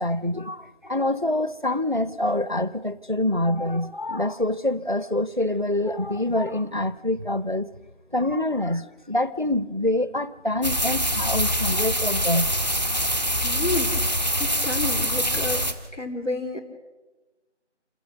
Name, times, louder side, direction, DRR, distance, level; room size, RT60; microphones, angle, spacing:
voice 1, 0.0-7.7 8.1-12.5, left 1 dB, 45° right, 0.6 m, -26 dB
sound 1, 10.6-15.7, equal, 35° left, 1.3 m, -24 dB
voice 2, 13.4-13.9 14.4-15.7 15.9-16.6, left 3 dB, 85° left, 3.6 m, -29 dB
27.5 x 16.0 x 6.4 m
figure-of-eight pair, 180°, 35 cm